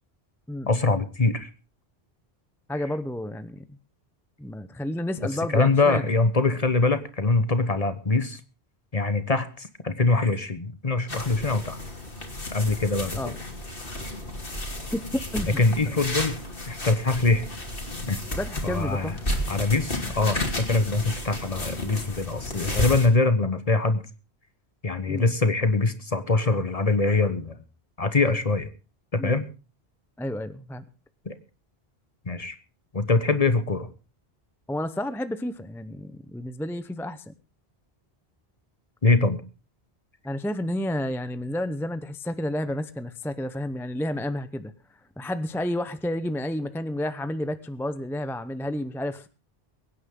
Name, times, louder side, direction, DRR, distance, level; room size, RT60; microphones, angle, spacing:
voice 1, 0.7-1.5 5.5-8.4 8.9-11.8 12.5-13.2 15.6-16.3 16.7-17.5 18.1-18.2 18.6-19.2 19.5-24.0 24.8-27.6 28.0-28.7 29.1-29.5 31.2-31.3 32.3-32.5 32.9-33.9 39.0-39.4, left 3 dB, 35° left, 11 dB, 1.2 m, -23 dB
voice 2, 2.7-3.8 4.4-6.1 13.2-13.4 14.9-15.6 18.3-19.4 25.1-25.2 29.2-29.4 30.2-30.8 34.7-37.3 40.2-44.7 45.2-49.3, left 1 dB, 5° left, 11 dB, 0.7 m, -31 dB
sound 1, 11.1-23.1, left 1 dB, 55° left, 3.0 m, -33 dB
23.0 x 9.9 x 3.7 m, 0.33 s
omnidirectional pair, 1.1 m